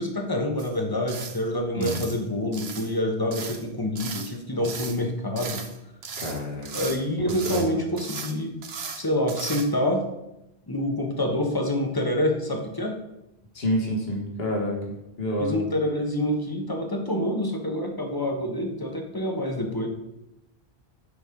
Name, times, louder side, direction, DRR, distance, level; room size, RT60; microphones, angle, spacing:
voice 1, 0.0-5.6 6.7-10.1 10.7-12.9 15.4-19.9, left 1 dB, 20° left, 3 dB, 1.2 m, -27 dB
sound 1, 0.6-0.8 1.1-1.4 1.8-2.2 2.5-2.9 3.3-3.6 4.0-4.3 4.6-5.0 5.4-5.8 6.0-7.0 7.3-7.7 8.0-8.3 8.6-9.0 9.3-9.6, right 5 dB, 70° right, 1.1 m, -36 dB
voice 2, 6.2-6.7 7.4-7.6 13.5-14.7 15.2-15.6, equal, 65° left, -1 dB, 2.1 m, -27 dB
8.3 x 5.4 x 5.2 m, 0.88 s
omnidirectional pair, 1.1 m